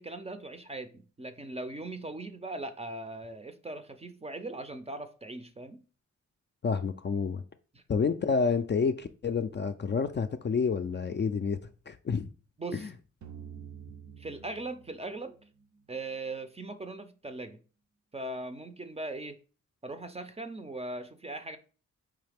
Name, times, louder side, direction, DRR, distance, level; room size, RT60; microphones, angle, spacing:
voice 1, 0.0-5.8 7.7-7.8 12.6-12.9 14.2-15.4 15.9-17.6 18.1-19.4 19.8-21.6, right 2 dB, 20° right, 0.5 m, -39 dB
voice 2, 6.6-7.4 7.9-11.6 11.9-12.3 12.7-12.9, left 5 dB, 35° left, 0.4 m, -29 dB
sound 1, 13.2-16.1, right 8 dB, 70° right, 0.7 m, -48 dB
4.8 x 3.2 x 3.4 m
wide cardioid pair, 90°, 30 cm